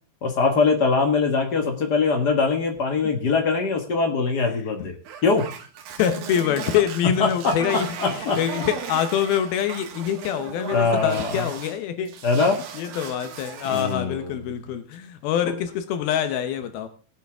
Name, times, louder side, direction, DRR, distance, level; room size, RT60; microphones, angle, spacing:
voice 1, 0.2-4.9 5.2-5.5 7.2-7.6 8.0-8.6 10.7-11.5 12.2-12.6 13.7-14.3, left 4 dB, 65° left, 4 dB, 1.0 m, -22 dB
sound 1, 5.1-11.8 12.1-14.0, right 7 dB, 80° right, 3.2 m, -36 dB
voice 2, 6.0-12.2 12.7-16.9, left 9 dB, 80° left, 9 dB, 2.8 m, -25 dB
19.0 x 8.5 x 3.5 m, 0.38 s
omnidirectional pair, 4.3 m